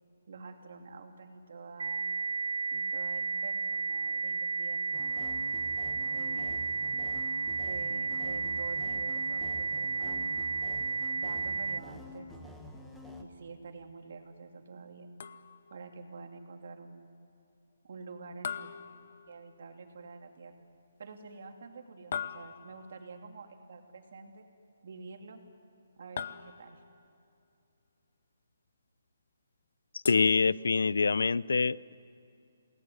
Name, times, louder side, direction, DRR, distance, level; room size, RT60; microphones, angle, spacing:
voice 1, 0.3-2.0 2.7-5.2 6.1-6.6 7.6-10.2 11.1-12.3 13.1-15.1 15.7-17.1 17.8-18.7 19.3-20.6 21.0-24.4 24.8-25.4 26.0-26.8, right 4 dB, 50° right, 4 dB, 2.8 m, -48 dB
sound 1, 1.8-11.8, right 4 dB, 80° right, 0.5 m, -33 dB
sound 2, 4.9-13.2, left 2 dB, ahead, 1.3 m, -47 dB
sound 3, 15.2-15.8 18.4-19.7 22.1-23.0 26.2-27.0 30.0-31.1, left 7 dB, 45° left, 0.9 m, -41 dB
voice 2, 30.1-32.0, left 4 dB, 80° left, 21 dB, 0.5 m, -25 dB
28.0 x 19.5 x 9.8 m, 2.6 s
hypercardioid pair, 175°, 0 cm